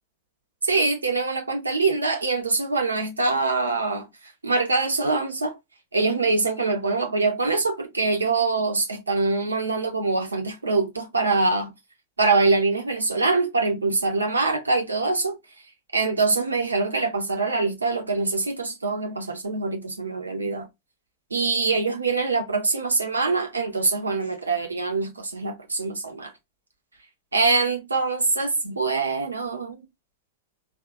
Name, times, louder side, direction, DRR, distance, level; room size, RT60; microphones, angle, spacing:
voice 1, 0.6-5.6 5.9-11.7 12.2-15.4 15.9-20.7 21.3-26.3 27.3-29.8, right 3 dB, 75° right, 0.6 m, -24 dB
4.1 x 2.3 x 2.4 m
figure-of-eight pair, 90°, 0 cm